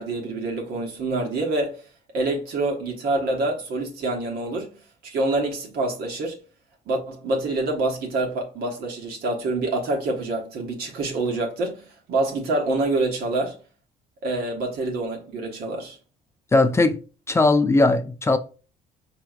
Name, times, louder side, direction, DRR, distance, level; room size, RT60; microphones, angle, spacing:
voice 1, 0.0-1.8 2.1-6.4 6.9-13.6 14.2-16.0, right 2 dB, 70° right, 1.3 m, -26 dB
voice 2, 16.5-17.0 17.3-18.4, left 2 dB, 15° left, 0.5 m, -18 dB
4.6 x 3.0 x 2.4 m
cardioid pair, 110°, 17 cm